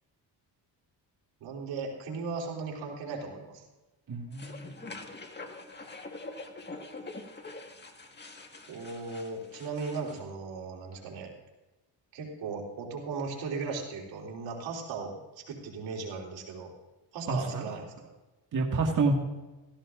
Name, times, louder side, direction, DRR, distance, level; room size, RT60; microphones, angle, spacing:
voice 1, 1.4-3.6 8.7-11.3 12.1-15.2 15.5-16.7 17.1-18.1, right 4 dB, 85° right, -1 dB, 3.8 m, -37 dB
voice 2, 4.1-4.7 17.3-17.7 18.5-19.1, right 4 dB, 45° right, 0 dB, 1.9 m, -28 dB
sound 1, 4.3-10.2, left 3 dB, 25° left, 1.8 m, -45 dB
16.5 x 15.5 x 2.6 m, 1.1 s
cardioid pair, 105°, 44 cm